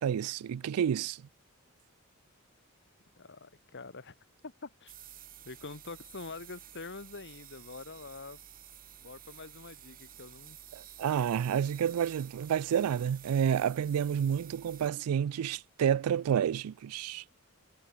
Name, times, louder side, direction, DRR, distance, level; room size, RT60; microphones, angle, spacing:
voice 1, 0.0-1.2 10.7-17.2, right 8 dB, 90° right, 0.3 m, -29 dB
voice 2, 3.2-4.1 4.4-4.9 5.4-8.4 9.0-10.6, left 3 dB, 55° left, 1.7 m, -45 dB
sound 1, 4.9-14.9, right 10 dB, 40° right, 2.4 m, -52 dB
head